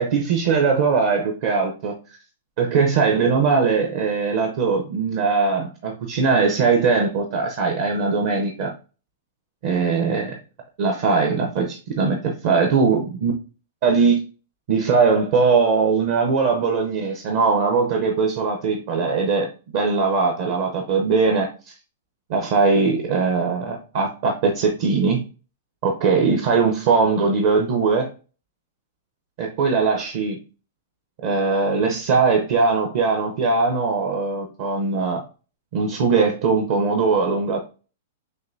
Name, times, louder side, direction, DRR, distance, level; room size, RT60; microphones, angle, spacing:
voice 1, 0.0-2.0 2.6-8.7 9.6-10.4 10.8-13.3 13.8-14.2 14.7-19.5 19.7-21.7 22.3-25.2 25.8-28.1 29.4-30.4 31.2-35.2 35.7-37.6, right 4 dB, 40° right, 2 dB, 0.6 m, -20 dB
6.4 x 2.5 x 2.5 m, 0.35 s
supercardioid pair, 170°, 0 cm